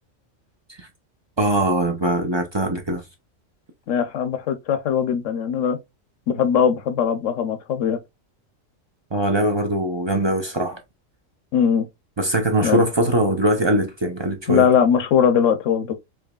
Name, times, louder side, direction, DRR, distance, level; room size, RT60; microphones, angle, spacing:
voice 1, 1.4-3.0 9.1-10.8 12.2-14.7, right 1 dB, 30° right, 0.5 m, -21 dB
voice 2, 3.9-5.8 6.3-8.0 11.5-11.9 12.6-12.8 14.5-15.9, left 7 dB, 75° left, 1.1 m, -20 dB
4.8 x 2.9 x 2.3 m
omnidirectional pair, 1.3 m